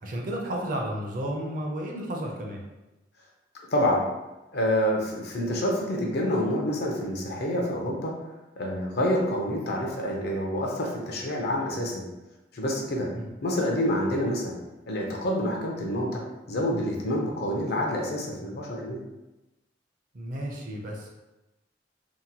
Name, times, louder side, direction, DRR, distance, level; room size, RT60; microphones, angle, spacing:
voice 1, 0.0-2.6 13.1-13.3 20.1-21.1, right 1 dB, 50° right, 0 dB, 0.5 m, -32 dB
voice 2, 3.7-4.0 4.5-8.1 8.6-12.0 12.5-13.1 13.4-14.5 14.9-16.2 16.5-19.0, equal, 60° left, -1 dB, 0.6 m, -27 dB
2.8 x 2.1 x 2.8 m, 1.0 s
head